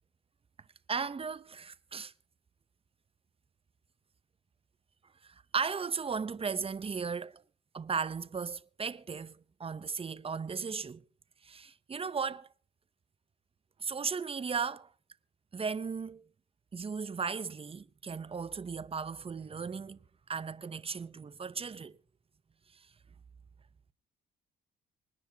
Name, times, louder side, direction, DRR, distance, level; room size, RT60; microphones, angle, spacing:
voice 1, 0.9-2.1 5.2-7.4 7.7-11.0 11.4-12.5 13.8-14.9 15.5-16.3 16.7-20.0 20.3-22.0 22.7-22.9, right 5 dB, 30° right, 0.8 m, -36 dB
26.0 x 9.9 x 2.9 m
cardioid pair, 90°, 20 cm